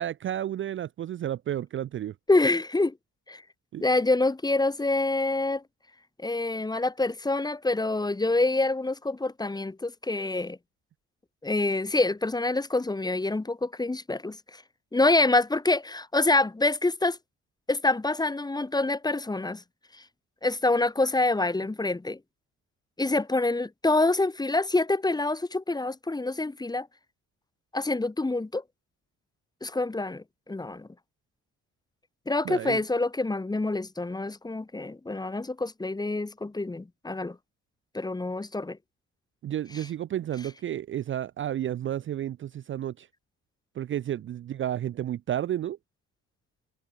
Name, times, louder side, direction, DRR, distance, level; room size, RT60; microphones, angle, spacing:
voice 1, 0.0-2.1 3.7-3.8 32.4-32.8 39.4-43.1 43.8-45.8, right 11 dB, 40° right, 0.4 m, -31 dB
voice 2, 2.3-2.9 3.3-3.4 3.8-5.6 6.2-10.6 11.4-14.6 14.9-17.2 17.7-19.6 20.4-22.2 23.0-26.9 27.7-28.6 29.6-30.9 32.3-37.4 37.9-38.8, left 2 dB, 15° left, 1.1 m, -26 dB
cardioid pair, 90°, 30 cm